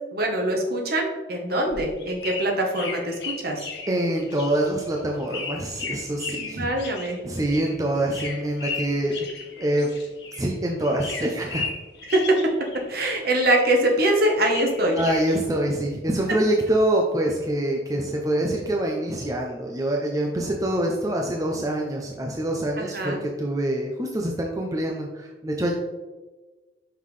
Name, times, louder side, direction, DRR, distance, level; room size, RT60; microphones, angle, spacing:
voice 1, 0.1-3.6 6.4-7.2 12.1-12.4 12.9-15.0 22.8-23.2, right 1 dB, 55° right, 1 dB, 1.1 m, -23 dB
sound 1, 1.5-10.5 10.8-13.0 13.3-15.4, left 4 dB, 60° left, 1.2 m, -36 dB
voice 2, 3.9-6.7 7.2-9.1 9.6-9.9 10.4-11.7 15.0-25.8, right 1 dB, 20° right, 0 dB, 0.5 m, -25 dB
5.6 x 5.5 x 3.2 m, 1.3 s
head